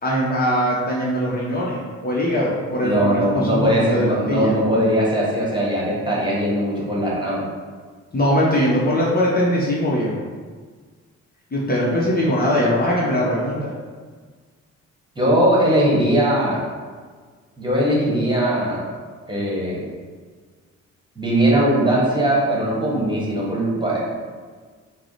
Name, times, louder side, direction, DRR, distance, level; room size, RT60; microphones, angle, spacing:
voice 1, 0.0-4.5 8.1-10.2 11.5-13.7, equal, 30° left, -5 dB, 0.8 m, -21 dB
voice 2, 2.8-7.4 15.2-16.6 17.6-18.8 19.3-19.8 21.2-24.0, right 1 dB, 15° right, -5 dB, 1.3 m, -20 dB
4.6 x 2.0 x 4.0 m, 1.5 s
cardioid pair, 90°, 30 cm